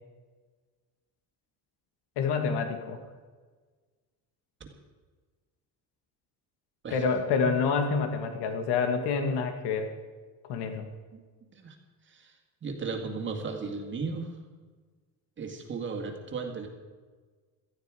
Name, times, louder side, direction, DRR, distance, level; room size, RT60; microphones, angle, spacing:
voice 1, 2.2-3.0 6.9-9.9 10.5-10.8, left 5 dB, 85° left, 7 dB, 1.8 m, -27 dB
voice 2, 12.6-14.3 15.4-16.7, right 4 dB, 30° right, 3 dB, 1.9 m, -35 dB
17.5 x 14.0 x 4.9 m, 1.4 s
cardioid pair, 170°, 39 cm